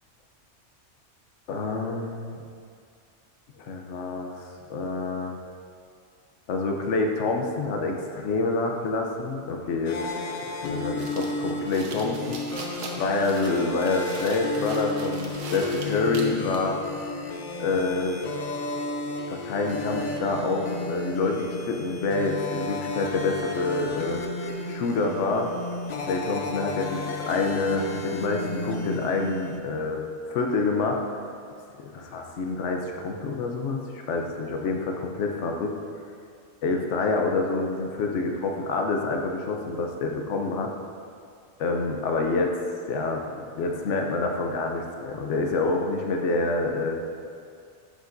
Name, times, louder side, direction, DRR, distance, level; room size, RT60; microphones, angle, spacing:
voice 1, 1.5-2.4 3.6-5.3 6.5-10.0 10.6-12.7 13.0-16.8 17.6-18.2 19.3-24.2 24.7-25.5 26.1-31.0 31.9-35.8 36.6-40.7 41.6-42.5 42.9-43.2 43.5-47.0, left 3 dB, 75° left, 2 dB, 1.0 m, -27 dB
sound 1, 9.9-29.6, left 3 dB, 55° left, 0.5 m, -33 dB
sound 2, 11.0-16.7, right 3 dB, 85° right, 1.2 m, -40 dB
11.0 x 5.2 x 2.6 m, 2.3 s
omnidirectional pair, 1.2 m